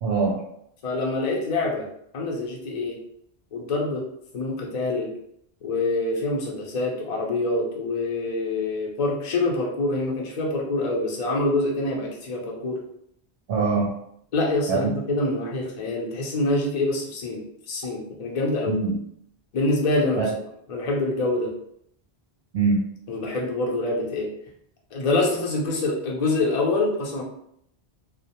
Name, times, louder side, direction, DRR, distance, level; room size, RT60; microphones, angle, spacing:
voice 1, 0.0-0.4 13.5-13.9 14.7-14.9 18.7-19.0 20.2-20.3 22.5-22.8, right 4 dB, 70° right, -3 dB, 0.7 m, -22 dB
voice 2, 0.8-1.9 2.1-3.0 3.5-4.1 4.3-5.1 5.6-12.8 14.3-18.8 19.5-20.3 20.7-21.5 23.1-24.3 24.9-27.2, left 2 dB, 45° left, -1 dB, 0.6 m, -25 dB
2.4 x 2.1 x 2.9 m, 0.71 s
omnidirectional pair, 1.1 m